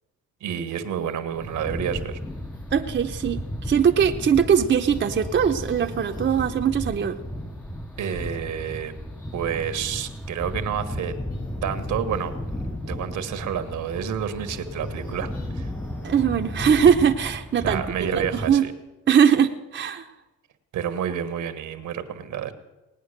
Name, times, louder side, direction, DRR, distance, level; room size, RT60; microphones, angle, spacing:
voice 1, 0.4-2.2 8.0-8.9 9.3-11.1 11.6-12.3 12.9-15.7 17.6-18.7 20.7-22.5, right 8 dB, 75° right, 10 dB, 1.4 m, -29 dB
sound 1, 0.6-16.6, left 1 dB, 90° left, 6.9 m, -51 dB
sound 2, 1.3-18.6, left 1 dB, 5° left, 0.8 m, -34 dB
voice 2, 2.7-7.2 16.0-17.8 18.2-18.6 19.1-20.1, right 7 dB, 40° right, 4 dB, 0.9 m, -21 dB
18.5 x 9.3 x 6.6 m, 1.1 s
cardioid pair, 90°, 30 cm